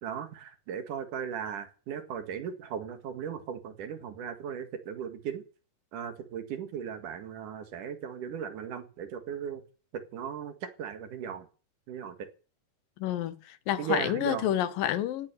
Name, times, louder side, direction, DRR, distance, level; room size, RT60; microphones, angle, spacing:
voice 1, 0.0-5.4 5.9-9.6 9.9-11.5 11.9-12.2 13.8-14.5, right 8 dB, 70° right, 3.3 m, -37 dB
voice 2, 13.0-15.3, left 12 dB, 85° left, 2.8 m, -29 dB
17.5 x 8.9 x 8.2 m
omnidirectional pair, 3.9 m